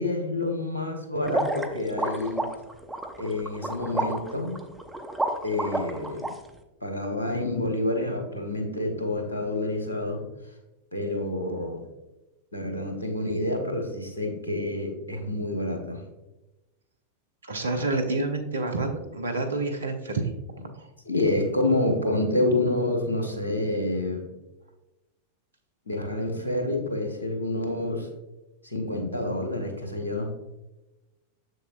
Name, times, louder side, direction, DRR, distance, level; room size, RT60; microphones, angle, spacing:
voice 1, 0.0-2.5 3.2-4.6 5.4-6.3 6.8-10.2 10.9-11.9 12.5-16.0 21.0-24.3 25.9-28.1 28.6-30.3, left 2 dB, 80° left, 3 dB, 1.1 m, -28 dB
sound 1, 1.3-6.3, right 2 dB, 5° right, 0.7 m, -30 dB
voice 2, 17.5-20.3 20.6-20.9, right 3 dB, 70° right, 7 dB, 0.9 m, -28 dB
7.2 x 6.5 x 2.5 m, 1.0 s
figure-of-eight pair, 90°, 0 cm